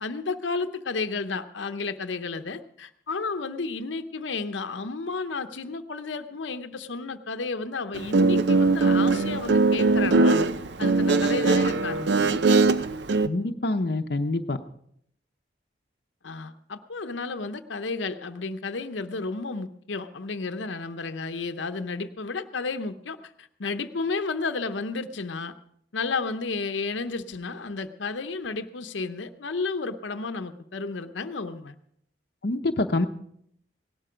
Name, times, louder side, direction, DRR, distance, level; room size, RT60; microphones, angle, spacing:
voice 1, 0.0-10.4 10.8-12.1 16.2-25.6 25.9-31.8, left 4 dB, 90° left, 9 dB, 0.8 m, -32 dB
Guitar, 7.9-13.3, right 3 dB, 75° right, 0.6 m, -21 dB
voice 2, 13.2-14.6 32.4-33.1, left 2 dB, 60° left, 5 dB, 0.8 m, -26 dB
17.5 x 12.0 x 5.0 m, 0.70 s
head